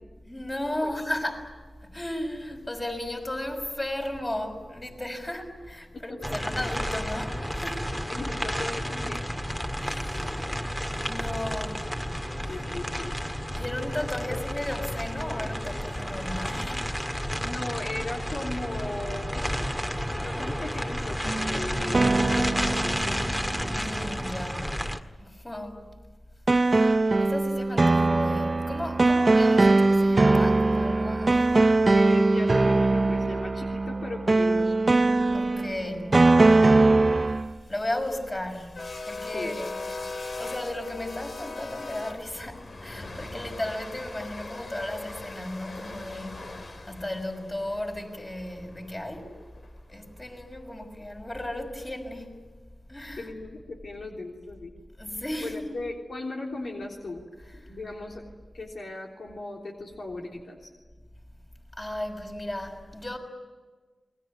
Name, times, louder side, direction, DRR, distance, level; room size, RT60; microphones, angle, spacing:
voice 1, 0.3-7.9 9.7-10.5 11.0-11.9 12.3-12.6 13.5-16.9 23.7-24.9 25.2-25.9 26.6-31.9 35.3-36.3 37.7-39.7 40.4-49.4 49.9-52.3 52.9-53.3 55.0-55.8 57.5-57.8 61.7-63.2, left 1 dB, 25° left, 5.8 m, -35 dB
voice 2, 5.9-6.7 8.1-9.3 12.5-13.1 14.3-14.4 17.3-19.4 20.1-23.3 31.9-34.7 39.3-39.6 53.2-54.7 55.4-57.2 57.5-58.2 58.5-60.7, left 2 dB, 75° left, 3.4 m, -37 dB
sound 1, 6.2-25.0, equal, 10° left, 1.8 m, -31 dB
sound 2, 21.2-24.2 26.5-37.5, right 2 dB, 45° right, 0.8 m, -21 dB
sound 3, 37.5-49.7, left 3 dB, 55° left, 2.5 m, -40 dB
28.5 x 21.0 x 9.6 m
cardioid pair, 55°, 0 cm